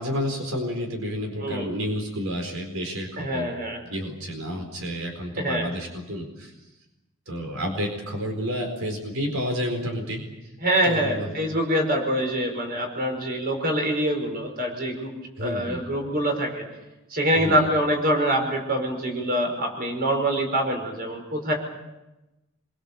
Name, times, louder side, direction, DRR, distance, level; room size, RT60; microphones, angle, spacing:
voice 1, 0.0-3.5 3.9-6.5 7.3-10.2 10.8-11.3 15.4-15.8 17.4-17.7, equal, 75° right, 3 dB, 4.4 m, -30 dB
voice 2, 3.2-3.8 5.4-5.7 10.6-15.1 15.4-16.6 17.1-21.5, right 1 dB, 45° right, 3 dB, 5.5 m, -25 dB
26.0 x 23.0 x 7.0 m, 1.0 s
head